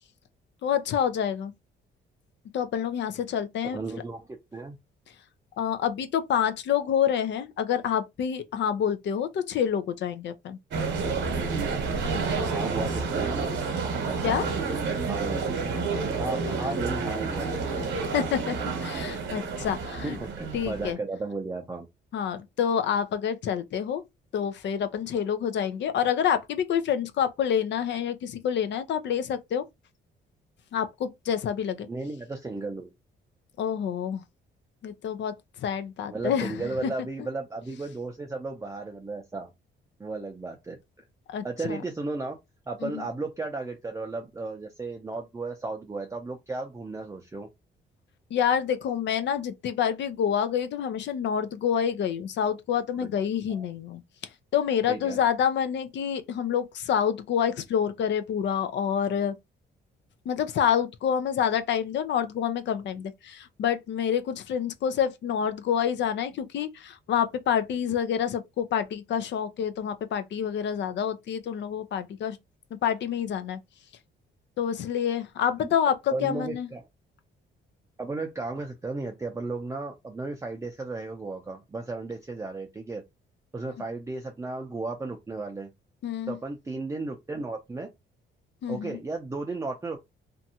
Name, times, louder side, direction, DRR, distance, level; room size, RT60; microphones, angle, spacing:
voice 1, 0.6-1.5 2.5-3.8 5.6-10.6 14.2-14.5 17.7-17.9 18.1-20.2 20.5-21.0 22.1-24.0 24.3-29.6 30.7-31.9 33.6-34.2 34.8-35.3 35.6-36.9 41.3-41.8 42.8-43.1 48.3-54.0 54.5-59.3 60.3-72.4 72.8-73.6 74.6-76.7 86.0-86.4 88.6-89.0, left 8 dB, 65° left, 0.5 m, -27 dB
voice 2, 3.7-4.8 12.5-13.4 14.1-15.7 16.2-17.9 20.0-21.9 31.9-32.9 36.1-39.5 40.0-40.8 41.4-42.4 42.7-47.5 53.0-53.1 53.5-53.7 54.9-55.2 76.1-76.8 78.0-83.0 83.5-85.7 86.3-87.9 88.7-90.1, right 3 dB, 15° right, 0.5 m, -34 dB
sound 1, 10.7-20.9, right 4 dB, 65° right, 1.0 m, -29 dB
2.6 x 2.3 x 2.7 m
cardioid pair, 90°, 20 cm